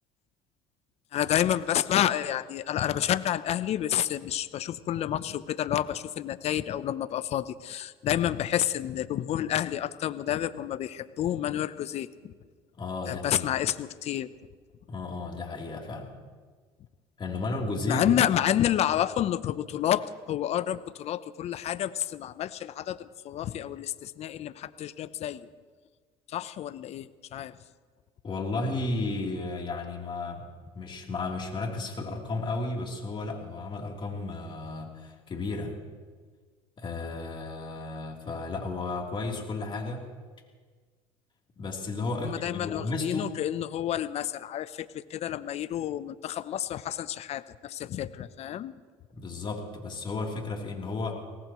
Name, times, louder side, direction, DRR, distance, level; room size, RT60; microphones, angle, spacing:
voice 1, 1.1-12.3 13.1-14.3 17.9-25.5 26.3-27.6 42.2-48.7, left 11 dB, 55° left, 15 dB, 0.8 m, -29 dB
voice 2, 12.7-13.5 14.9-16.1 17.2-18.2 28.2-30.4 30.7-35.8 36.8-40.0 41.6-43.3 49.1-51.1, left 3 dB, 40° left, 0 dB, 3.4 m, -33 dB
24.0 x 18.0 x 3.1 m, 1.5 s
supercardioid pair, 80°, 13 cm